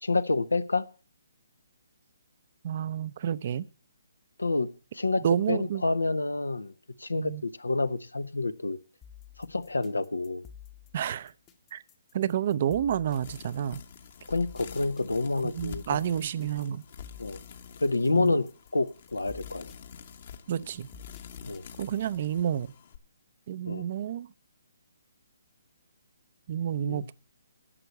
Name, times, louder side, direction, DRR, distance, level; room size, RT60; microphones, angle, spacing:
voice 1, 0.0-0.9 4.4-4.7 4.9-6.7 7.0-8.8 9.4-10.4 14.3-16.0 17.2-17.4 17.8-19.7 21.4-21.7 23.6-23.9 26.9-27.1, left 3 dB, 85° left, 0.7 m, -28 dB
voice 2, 2.6-3.7 5.2-5.8 7.2-7.4 10.9-11.3 11.7-11.8 12.1-13.8 15.4-16.8 18.1-18.3 20.5-20.9 21.8-22.7 23.5-24.3 26.5-27.1, right 9 dB, 45° right, 0.5 m, -29 dB
sound 1, 9.0-22.2, left 9 dB, 20° left, 0.9 m, -51 dB
sound 2, 13.1-23.0, left 7 dB, 50° left, 1.2 m, -48 dB
11.0 x 6.9 x 8.0 m
figure-of-eight pair, 140°, 0 cm